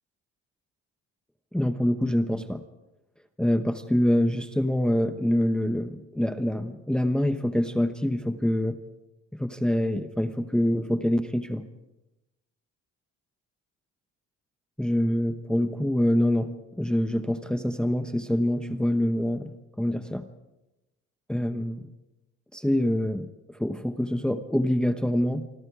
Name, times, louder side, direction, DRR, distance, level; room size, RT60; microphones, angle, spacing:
voice 1, 1.5-2.6 3.4-8.8 9.3-11.7 14.8-16.5 16.8-20.2 21.3-21.8 22.5-25.5, left 1 dB, 5° left, 8 dB, 1.0 m, -25 dB
28.0 x 25.5 x 4.9 m, 0.99 s
cardioid pair, 125°, 30 cm